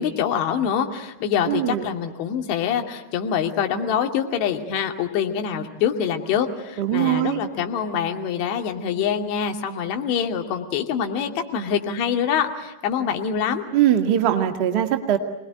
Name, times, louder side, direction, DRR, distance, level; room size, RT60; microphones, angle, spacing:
voice 1, 0.0-13.6, left 8 dB, 45° left, 4 dB, 2.5 m, -25 dB
voice 2, 1.5-1.8 6.8-7.4 13.7-15.2, right 11 dB, 45° right, 5 dB, 2.0 m, -21 dB
26.5 x 20.0 x 9.2 m, 1.0 s
figure-of-eight pair, 90°, 0 cm